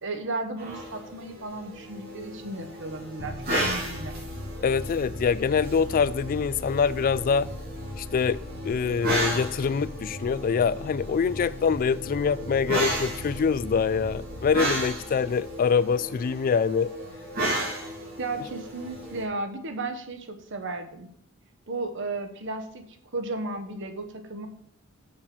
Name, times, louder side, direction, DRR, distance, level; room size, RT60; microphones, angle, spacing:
voice 1, 0.0-4.2 18.2-21.1 21.7-24.5, right 2 dB, 60° right, 1.2 m, -34 dB
sound 1, 0.6-19.2, right 1 dB, 45° right, 3.2 m, -34 dB
sound 2, 3.2-16.6, left 1 dB, 75° left, 1.2 m, -40 dB
voice 2, 4.6-7.5 8.0-8.4 8.6-16.9, left 6 dB, 45° left, 0.3 m, -25 dB
7.4 x 6.5 x 6.1 m
head